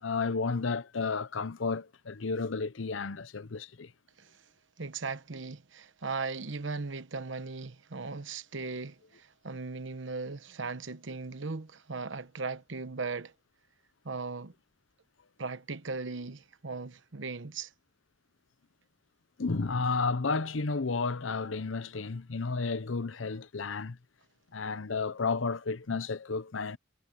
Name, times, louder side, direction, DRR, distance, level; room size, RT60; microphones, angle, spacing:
voice 1, 0.0-3.9 19.4-24.0 24.5-26.8, left 4 dB, 85° left, 0.8 m, -32 dB
voice 2, 4.8-13.3 14.0-14.5 15.4-17.7, right 4 dB, 70° right, 1.1 m, -38 dB
head